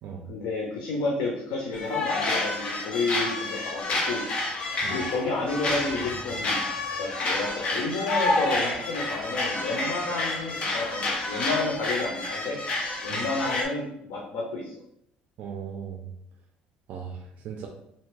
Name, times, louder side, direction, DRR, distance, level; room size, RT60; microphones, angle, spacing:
voice 1, 0.3-4.3 4.9-6.6 7.0-12.6 13.0-14.7, left 3 dB, 80° left, -2 dB, 0.7 m, -30 dB
sound 1, 1.7-13.6, left 2 dB, 40° left, 0.7 m, -29 dB
voice 2, 15.4-16.0 16.9-17.7, right 7 dB, 60° right, 2 dB, 0.4 m, -37 dB
3.3 x 2.8 x 3.2 m, 0.75 s
cardioid pair, 145°, 3 cm